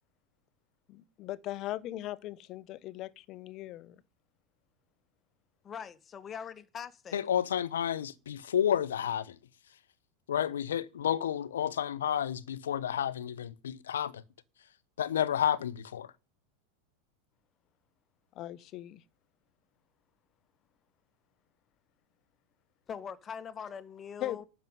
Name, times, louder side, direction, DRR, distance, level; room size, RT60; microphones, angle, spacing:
voice 1, 0.9-4.0 18.3-19.0 24.2-24.4, left 15 dB, 45° left, 1.1 m, -39 dB
voice 2, 5.6-7.2 22.9-24.4, left 7 dB, 30° left, 1.7 m, -42 dB
voice 3, 7.1-9.4 9.7-9.8 10.3-14.2 15.0-16.1, left 9 dB, 75° left, 1.0 m, -31 dB
12.0 x 6.8 x 9.3 m
hypercardioid pair, 90°, 0 cm